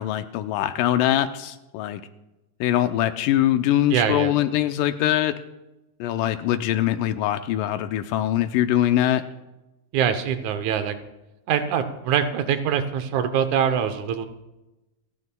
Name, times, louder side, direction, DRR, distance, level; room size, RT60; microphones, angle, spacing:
voice 1, 0.0-2.0 2.6-5.4 6.0-9.2, left 12 dB, 85° left, 9 dB, 2.2 m, -22 dB
voice 2, 3.9-4.3 9.9-11.0 11.5-14.3, right 8 dB, 70° right, 9 dB, 2.0 m, -23 dB
29.0 x 11.0 x 2.2 m, 0.98 s
omnidirectional pair, 3.8 m